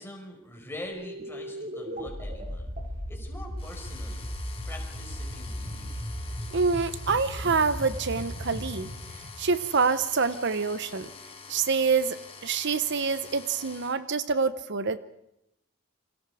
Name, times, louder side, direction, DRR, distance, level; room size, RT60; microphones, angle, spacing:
voice 1, 0.0-2.7 3.1-4.3 4.7-6.1, left 1 dB, 10° left, 1 dB, 5.2 m, -44 dB
sound 1, 0.9-10.2, equal, 40° right, 5.5 m, -37 dB
sound 2, 3.6-13.9, left 5 dB, 30° left, 3.0 m, -46 dB
voice 2, 6.5-8.9 9.4-11.1 11.5-15.0, right 5 dB, 60° right, 13 dB, 0.9 m, -26 dB
28.5 x 25.0 x 5.0 m, 0.81 s
head